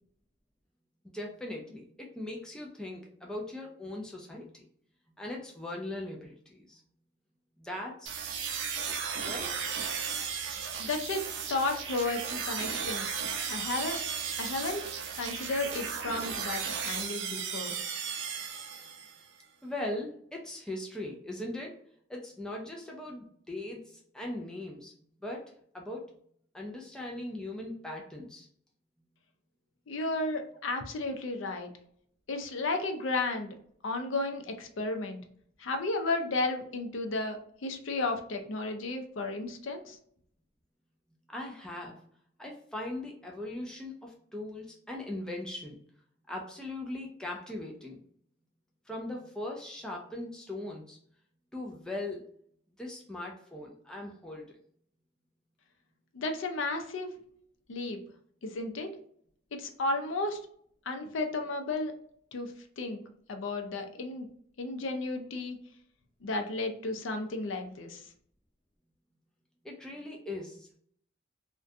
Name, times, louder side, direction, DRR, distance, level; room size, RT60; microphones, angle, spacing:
voice 1, 1.0-4.7 5.1-6.8 7.6-8.2 9.2-9.8 19.6-21.8 22.1-25.4 25.7-26.2 26.5-28.5 41.3-42.0 42.4-45.8 46.3-48.0 48.9-51.0 51.5-52.3 52.8-54.6 69.6-70.8, left 1 dB, 5° left, -1 dB, 0.3 m, -40 dB
sound 1, 8.1-19.2, right 6 dB, 75° right, 0.4 m, -35 dB
voice 2, 10.8-14.0 14.4-14.9 15.1-17.8 29.9-31.7 32.3-33.5 33.8-35.2 35.6-40.0 56.1-57.2 57.7-58.0 58.4-59.0 59.5-60.4 60.9-61.9 62.3-63.0 63.3-64.3 64.6-65.6 66.2-68.1, left 2 dB, 90° left, 5 dB, 0.5 m, -33 dB
2.4 x 2.1 x 2.6 m, 0.63 s
head